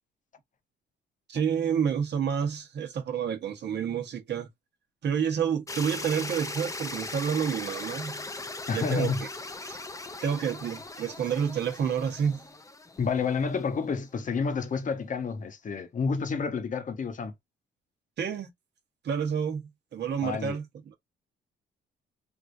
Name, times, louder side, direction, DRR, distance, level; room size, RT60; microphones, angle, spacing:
voice 1, 1.3-4.5 5.0-8.2 8.7-9.1 9.6-9.8 10.2-12.5 18.2-18.5 19.0-20.9, right 7 dB, 60° right, 1.0 m, -29 dB
sound 1, 5.7-13.7, left 2 dB, 15° left, 0.6 m, -39 dB
voice 2, 8.7-9.3 13.0-17.3 20.2-20.6, left 5 dB, 40° left, 0.9 m, -29 dB
3.5 x 2.5 x 2.6 m
cardioid pair, 90°, 20 cm